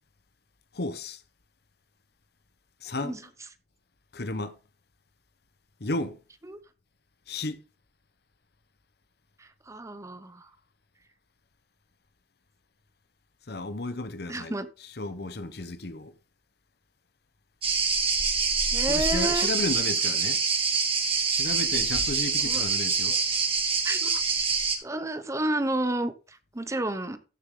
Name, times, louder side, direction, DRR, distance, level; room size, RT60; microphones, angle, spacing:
voice 1, 0.8-1.2 2.8-3.2 4.1-4.5 5.8-6.2 7.3-7.6 13.5-14.5 15.0-16.1 18.9-20.4 21.3-23.2, left 2 dB, 65° left, 1.1 m, -33 dB
voice 2, 3.0-3.5 6.4-6.6 9.4-10.5 14.3-14.7 18.7-19.5 22.4-22.6 23.8-24.2 24.8-27.2, right 1 dB, 20° right, 0.8 m, -31 dB
sound 1, 17.6-24.8, right 5 dB, 35° right, 2.3 m, -25 dB
13.5 x 6.7 x 3.9 m
head